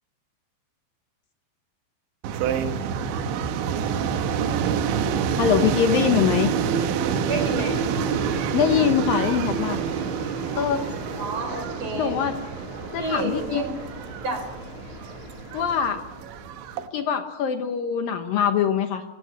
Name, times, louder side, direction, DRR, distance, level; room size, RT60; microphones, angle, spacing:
sound 1, 2.2-16.9, right 7 dB, 75° right, 3.5 m, -27 dB
voice 1, 5.4-6.5 8.5-9.8 10.5-10.8 11.9-12.3 12.9-13.6 15.5-16.0 16.9-19.0, left 8 dB, 75° left, 7 dB, 2.1 m, -23 dB
voice 2, 7.2-7.8 11.2-12.2 13.0-13.7 14.2-14.5, right 3 dB, 30° right, 6 dB, 4.0 m, -29 dB
sound 2, 7.3-16.4, left 3 dB, 25° left, 2.6 m, -41 dB
24.5 x 16.0 x 8.3 m, 1.0 s
omnidirectional pair, 5.5 m